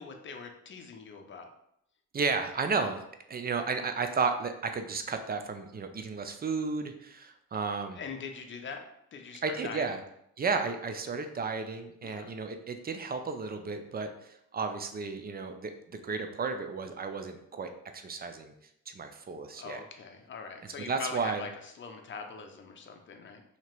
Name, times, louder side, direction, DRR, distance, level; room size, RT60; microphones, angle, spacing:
voice 1, 0.0-1.5 7.9-10.0 12.0-12.3 19.5-23.4, left 5 dB, 40° left, 4 dB, 0.7 m, -42 dB
voice 2, 2.1-3.0 3.3-8.0 9.4-10.0 10.4-18.5 18.9-19.8 20.6-21.4, right 4 dB, 30° right, 7 dB, 0.5 m, -33 dB
2.9 x 2.9 x 4.4 m, 0.76 s
cardioid pair, 90°, 30 cm